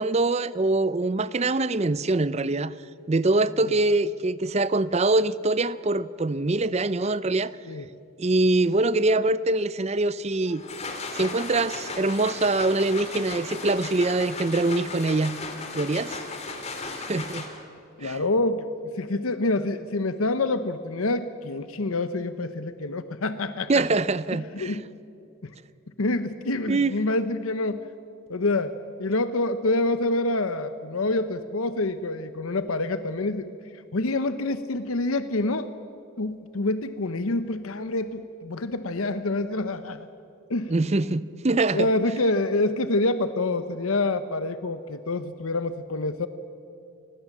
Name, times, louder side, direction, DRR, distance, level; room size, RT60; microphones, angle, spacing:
voice 1, 0.0-2.7 3.1-7.5 8.2-10.6 11.1-15.4 15.7-16.2 16.9-17.5 18.0-18.2 23.7-24.8 26.7-27.0 40.7-41.9, right 2 dB, 30° right, 0.5 m, -24 dB
sound 1, 10.4-17.8, left 3 dB, 30° left, 2.5 m, -36 dB
voice 2, 18.0-23.9 24.3-24.9 25.4-25.5 26.0-27.9 28.3-35.7 36.2-40.1 40.5-40.8 41.7-46.3, left 2 dB, 75° left, 0.9 m, -27 dB
28.0 x 20.5 x 7.4 m
head